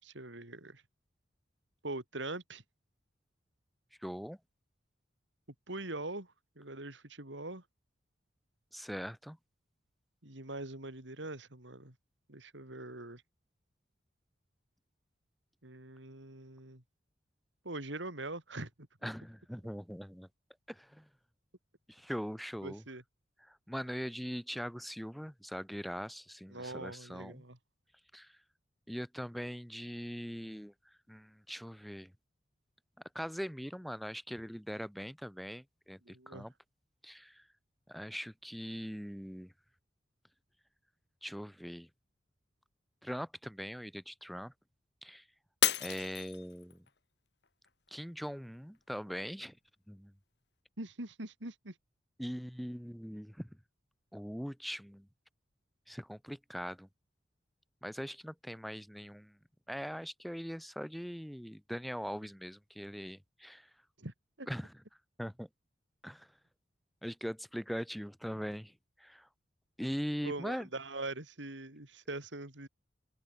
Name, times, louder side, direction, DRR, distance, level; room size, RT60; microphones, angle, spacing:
voice 1, 0.0-0.8 1.8-2.6 5.7-6.3 6.6-7.6 10.2-11.9 12.3-13.2 15.6-16.8 17.6-18.7 22.6-23.0 26.5-27.6 36.0-36.5 50.8-51.7 64.0-64.5 70.2-72.7, right 2 dB, 75° right, 3.9 m, -42 dB
voice 2, 4.0-4.4 8.7-9.4 19.0-20.3 20.7-21.1 21.9-22.8 23.5-27.4 28.1-28.3 28.9-30.7 31.1-32.1 33.1-36.5 37.0-37.4 37.9-39.5 41.2-41.9 43.0-44.5 45.0-45.2 45.8-46.8 47.9-49.6 49.9-50.1 52.2-53.6 54.1-55.1 55.9-56.9 57.8-59.4 59.7-63.7 64.5-64.7 65.2-65.5 66.0-66.3 67.0-68.7 69.0-69.3 69.8-70.7, equal, ahead, 2.5 m, -41 dB
Shatter, 45.6-46.9 47.4-47.9 48.4-48.5, left 11 dB, 60° left, 2.7 m, -32 dB
head